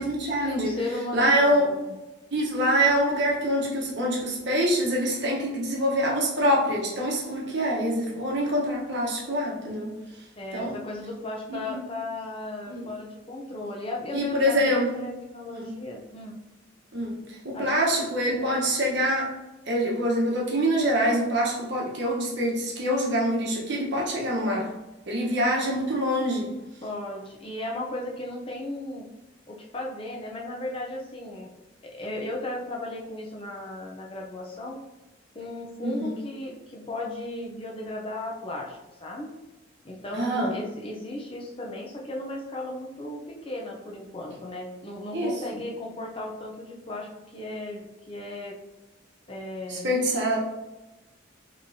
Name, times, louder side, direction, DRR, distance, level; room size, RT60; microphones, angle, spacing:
voice 1, 0.0-0.7 1.1-1.7 2.3-9.9 10.5-10.7 11.5-11.7 12.7-12.8 14.1-15.0 15.6-15.7 16.9-17.2 17.4-19.3 19.7-24.7 25.1-26.5 35.8-36.1 40.1-40.5 45.1-45.3 49.7-50.4, equal, 60° right, -3 dB, 1.1 m, -25 dB
voice 2, 0.6-1.9 10.4-16.4 17.5-17.7 26.8-29.1 29.5-31.5 31.8-34.8 35.3-39.3 39.8-48.6 49.3-50.0, left 1 dB, 25° left, -1 dB, 0.6 m, -36 dB
5.2 x 3.1 x 2.7 m, 1.0 s
head